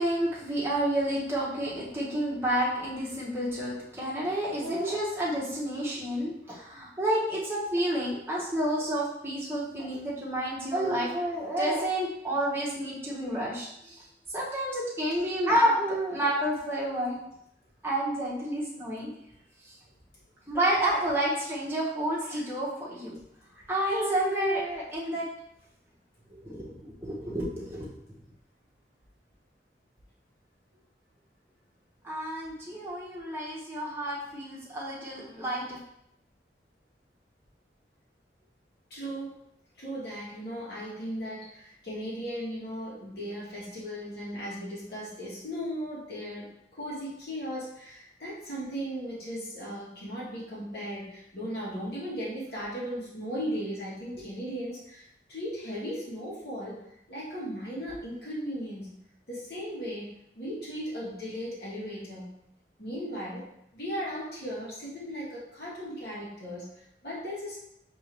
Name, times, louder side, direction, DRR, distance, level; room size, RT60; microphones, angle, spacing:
voice 1, 0.0-14.0 14.3-17.2 17.8-19.1 19.6-19.7 20.5-23.1 23.7-25.3 26.3-27.9 32.0-35.8, right 1 dB, 15° right, -7 dB, 1.1 m, -30 dB
voice 2, 38.9-39.3 39.8-56.8 57.1-58.9 59.3-62.3 62.8-63.4 63.7-67.6, equal, 60° left, -7 dB, 1.7 m, -37 dB
4.5 x 3.1 x 3.4 m, 0.78 s
head